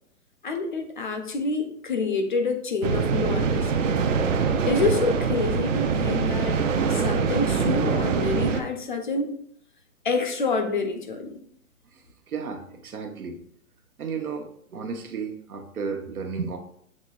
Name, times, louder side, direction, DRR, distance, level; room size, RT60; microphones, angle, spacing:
voice 1, 0.4-3.7 4.7-9.3 10.0-11.3, left 3 dB, 35° left, 6 dB, 0.5 m, -27 dB
sound 1, 2.8-8.6, right 5 dB, 65° right, 0.6 m, -24 dB
voice 2, 11.9-13.4 14.0-16.6, right 5 dB, 90° right, 4 dB, 1.1 m, -33 dB
7.4 x 3.1 x 2.3 m, 0.68 s
hypercardioid pair, 155°, 42 cm